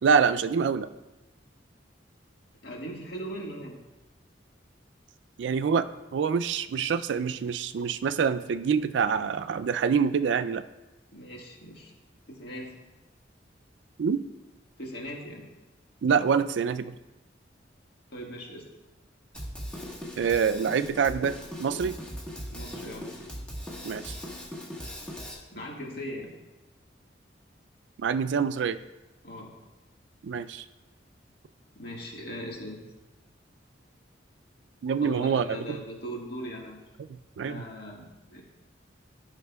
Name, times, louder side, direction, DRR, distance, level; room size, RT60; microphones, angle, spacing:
voice 1, 0.0-0.9 5.4-10.6 14.0-14.2 16.0-16.9 20.2-21.3 21.6-22.0 23.8-24.2 28.0-28.8 30.2-30.6 34.8-35.8 37.1-37.6, right 6 dB, 75° right, 12 dB, 0.3 m, -26 dB
voice 2, 2.6-3.8 11.1-11.9 12.3-12.8 14.8-15.4 18.1-18.7 22.5-23.1 25.5-26.3 29.2-29.5 31.7-32.8 35.0-36.8 37.4-38.4, equal, 60° left, -1 dB, 1.7 m, -39 dB
Drum kit, 19.3-25.3, equal, 5° left, 1.3 m, -39 dB
13.5 x 5.7 x 2.3 m, 1.1 s
head